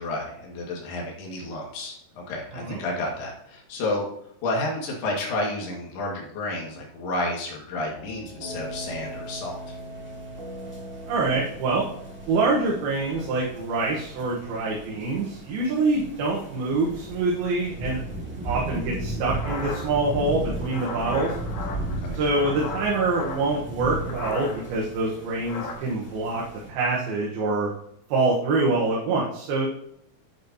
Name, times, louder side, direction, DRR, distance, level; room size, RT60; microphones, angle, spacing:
voice 1, 0.0-4.1 4.4-9.6 22.0-22.2, left 2 dB, 85° left, -2 dB, 4.0 m, -31 dB
sound 1, 7.7-25.7, right 1 dB, 40° right, 3.1 m, -44 dB
sound 2, 8.5-26.7, right 1 dB, 5° right, 0.8 m, -36 dB
voice 2, 11.1-11.8 12.3-18.0 18.4-21.3 22.1-26.4 26.7-27.7 28.1-29.7, right 3 dB, 75° right, -3 dB, 3.1 m, -25 dB
sound 3, 19.3-23.6 24.0-24.8 25.1-25.8, left 3 dB, 60° left, 2.2 m, -36 dB
10.0 x 8.4 x 2.8 m, 0.71 s
omnidirectional pair, 4.5 m